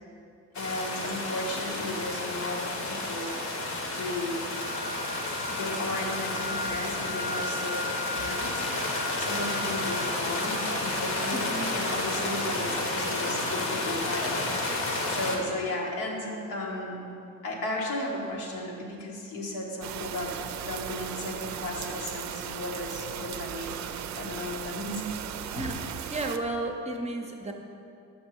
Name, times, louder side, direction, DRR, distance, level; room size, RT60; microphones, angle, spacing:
voice 1, 0.5-3.4 4.0-4.5 5.5-8.7 9.2-17.1 17.4-20.3 20.7-23.8 24.2-25.1, left 1 dB, 85° left, -2 dB, 1.2 m, -35 dB
sound 1, 0.5-15.4, left 2 dB, 65° left, 1.1 m, -31 dB
sound 2, 4.5-12.6, left 1 dB, 25° left, 0.6 m, -39 dB
sound 3, 19.8-26.4, right 9 dB, 65° right, 0.4 m, -37 dB
voice 2, 25.5-27.5, right 2 dB, 20° right, 3 dB, 0.6 m, -33 dB
6.0 x 5.4 x 4.4 m, 2.6 s
cardioid pair, 90°, 30 cm